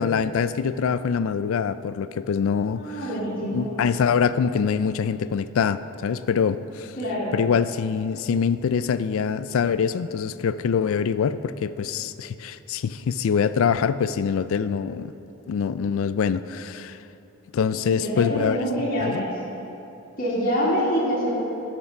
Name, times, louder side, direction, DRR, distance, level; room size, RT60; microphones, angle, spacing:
voice 1, 0.0-3.0 3.5-6.9 7.3-15.1 15.5-17.0 17.5-19.2, left 6 dB, 65° left, 14 dB, 0.3 m, -24 dB
voice 2, 2.7-3.7 7.0-7.3 17.8-19.4 20.2-21.4, equal, 40° left, -9 dB, 2.1 m, -25 dB
10.0 x 6.7 x 5.9 m, 2.9 s
head